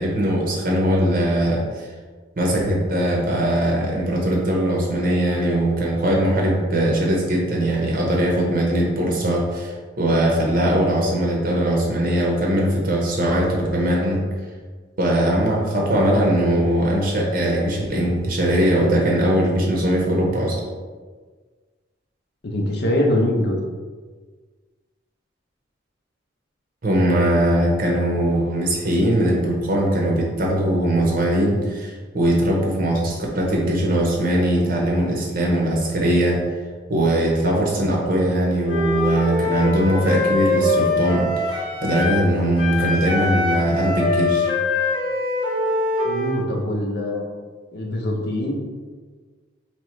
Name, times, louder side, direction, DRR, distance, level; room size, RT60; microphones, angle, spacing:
voice 1, 0.0-1.9 2.4-14.2 15.0-20.6 26.8-36.4 36.9-44.5, right 1 dB, 50° right, -2 dB, 0.7 m, -20 dB
voice 2, 22.4-23.6 46.0-47.2 47.7-48.6, left 1 dB, 60° left, 1 dB, 0.7 m, -23 dB
Wind instrument woodwind instrument, 38.6-42.3 42.6-46.5, left 2 dB, 25° left, 0.8 m, -23 dB
3.1 x 2.9 x 4.4 m, 1.5 s
head